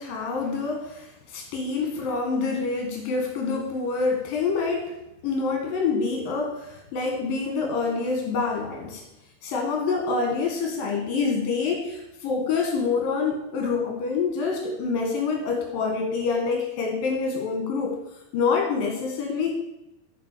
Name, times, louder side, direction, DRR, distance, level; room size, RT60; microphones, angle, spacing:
voice 1, 0.0-4.9 5.2-9.0 9.4-18.0 18.3-19.6, left 4 dB, 60° left, 1 dB, 3.3 m, -26 dB
9.2 x 7.1 x 6.8 m, 0.89 s
omnidirectional pair, 4.9 m